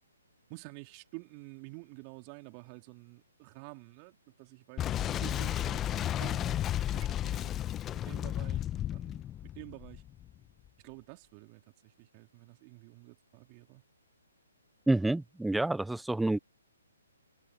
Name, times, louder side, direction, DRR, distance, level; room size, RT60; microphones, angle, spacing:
voice 1, 0.5-6.7 6.9-7.5 8.0-9.2 9.5-10.0 10.8-13.8, right 29 dB, 30° right, 3.4 m, -49 dB
Boom, 4.8-10.3, left 11 dB, 20° left, 0.8 m, -33 dB
voice 2, 14.9-16.4, right 2 dB, 5° right, 0.4 m, -28 dB
figure-of-eight pair, 135°, 0 cm